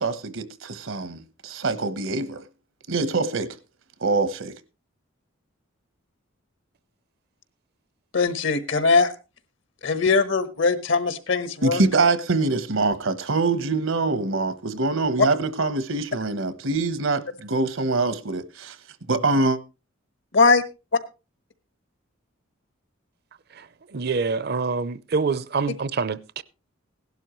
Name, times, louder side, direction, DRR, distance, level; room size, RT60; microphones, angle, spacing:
voice 1, 0.0-2.4 2.9-3.6 4.0-4.5 11.6-18.8 19.1-19.6, right 3 dB, 80° right, 1.1 m, -24 dB
voice 2, 8.1-9.1 9.8-11.8 20.3-20.6, left 4 dB, 65° left, 1.3 m, -20 dB
voice 3, 23.5-26.4, right 4 dB, 50° right, 0.6 m, -26 dB
17.0 x 12.0 x 3.1 m
head